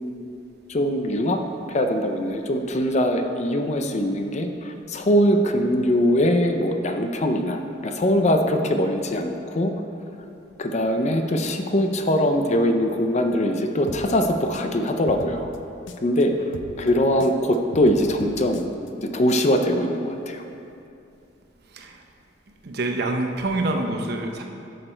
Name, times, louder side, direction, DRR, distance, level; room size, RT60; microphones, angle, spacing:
voice 1, 0.7-1.4 1.7-9.7 10.6-15.5 16.0-18.6 19.0-20.4, equal, 40° left, 5 dB, 0.6 m, -22 dB
sound 1, 13.9-16.2 16.5-18.9, left 2 dB, 80° left, 0.6 m, -40 dB
voice 2, 22.6-24.4, right 2 dB, 60° right, 3 dB, 0.9 m, -26 dB
11.0 x 6.6 x 4.4 m, 2.6 s
head